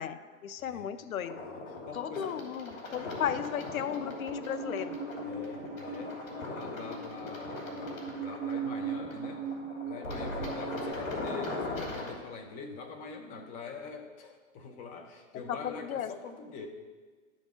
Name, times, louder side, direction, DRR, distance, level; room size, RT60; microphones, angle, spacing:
voice 1, 0.0-1.4 1.9-5.0 15.5-16.1, left 9 dB, 85° left, 13 dB, 0.6 m, -35 dB
sound 1, 1.2-12.1, left 2 dB, 70° left, 2.6 m, -40 dB
voice 2, 1.4-2.4 5.2-6.2 6.5-9.5 9.8-16.7, left 5 dB, 20° left, 4 dB, 0.6 m, -44 dB
Musical instrument, 4.0-10.9, right 5 dB, 5° right, 2.4 m, -39 dB
11.5 x 3.9 x 4.9 m, 1.4 s
hypercardioid pair, 130°, 41 cm